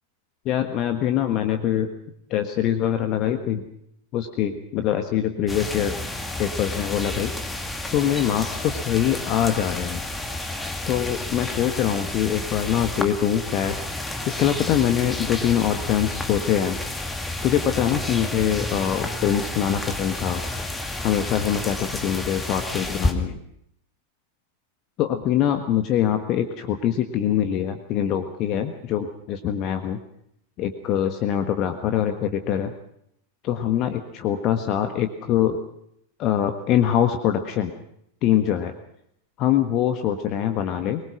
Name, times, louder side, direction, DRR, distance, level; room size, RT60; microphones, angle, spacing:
voice 1, 0.4-1.9 2.3-3.6 4.1-6.0 6.4-7.3 7.9-10.0 10.9-13.8 14.3-16.8 17.4-20.4 21.0-23.4 25.0-30.0 30.6-32.7 33.4-35.6 36.2-37.7 38.2-38.7 39.4-41.0, left 10 dB, 35° left, 7 dB, 1.5 m, -23 dB
sound 1, 5.5-23.1, left 2 dB, 10° left, 2.4 m, -31 dB
23.5 x 21.0 x 6.1 m, 0.73 s
figure-of-eight pair, 90°, 0 cm